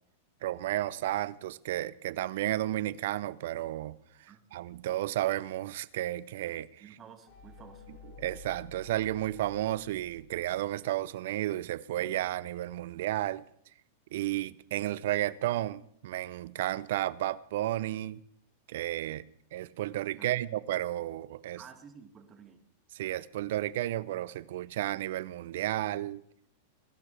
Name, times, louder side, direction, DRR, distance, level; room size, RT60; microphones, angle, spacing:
voice 1, 0.4-4.0 4.5-6.7 8.2-13.4 14.1-18.2 18.7-19.2 19.5-21.6 22.9-26.2, right 14 dB, 65° right, 0.5 m, -32 dB
voice 2, 6.8-7.9 19.1-19.2 20.2-20.5 21.6-22.6, right 7 dB, 30° right, 1.9 m, -52 dB
sound 1, 7.3-11.0, left 4 dB, 50° left, 2.1 m, -52 dB
21.5 x 12.0 x 3.4 m
hypercardioid pair, 110°, 0 cm